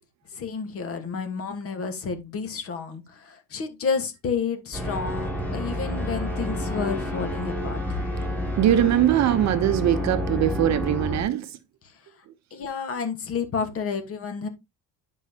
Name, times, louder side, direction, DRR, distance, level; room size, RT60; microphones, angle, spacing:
voice 1, 0.3-8.0 12.5-14.5, left 5 dB, 40° left, 1.4 m, -30 dB
sound 1, 4.7-11.2, left 1 dB, 5° left, 3.1 m, -29 dB
voice 2, 8.6-11.5, right 11 dB, 50° right, 0.8 m, -21 dB
10.0 x 5.4 x 2.8 m
cardioid pair, 165°, 36 cm